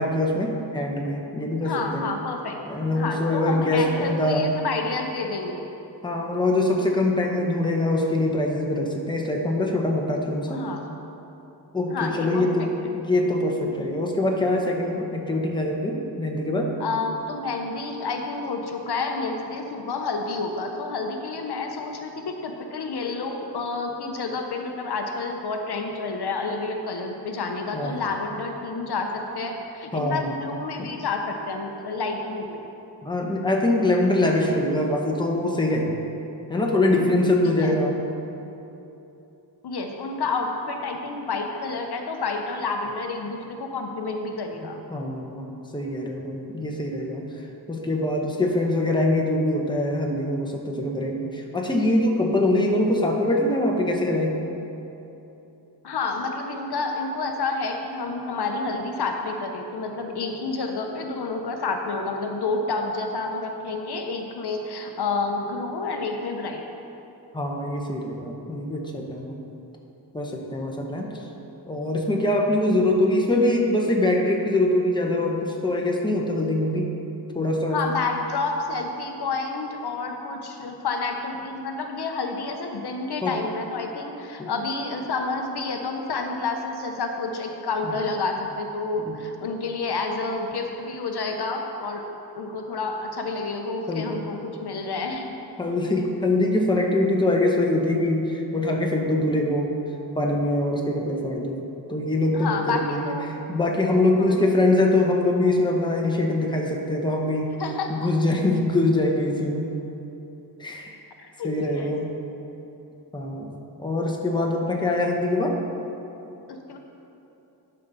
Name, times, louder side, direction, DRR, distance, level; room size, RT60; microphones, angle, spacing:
voice 1, 0.0-2.1 2.6-4.5 6.0-10.6 11.7-16.7 27.7-28.0 29.9-30.3 30.8-30.9 33.0-36.0 36.5-38.0 44.9-45.4 45.7-47.2 47.7-54.4 67.3-69.4 70.1-71.2 71.7-76.9 77.3-77.8 83.2-83.4 84.4-84.5 87.8-88.0 89.0-89.2 93.9-94.1 95.6-99.7 100.2-101.6 101.9-103.1 103.5-107.5 107.9-109.7 110.6-110.9 111.4-112.1 113.1-115.6, left 1 dB, 10° left, 0 dB, 0.9 m, -23 dB
voice 2, 1.6-2.6 2.9-5.7 10.5-10.8 11.9-12.7 16.8-32.6 37.6-37.7 39.6-44.8 55.8-66.6 77.7-92.0 92.3-95.3 102.3-103.3 104.2-104.4 107.6-108.1 111.2-111.9 116.5-116.8, left 3 dB, 65° left, 3 dB, 0.8 m, -29 dB
11.5 x 5.7 x 4.0 m, 3.0 s
wide cardioid pair, 100°, 41 cm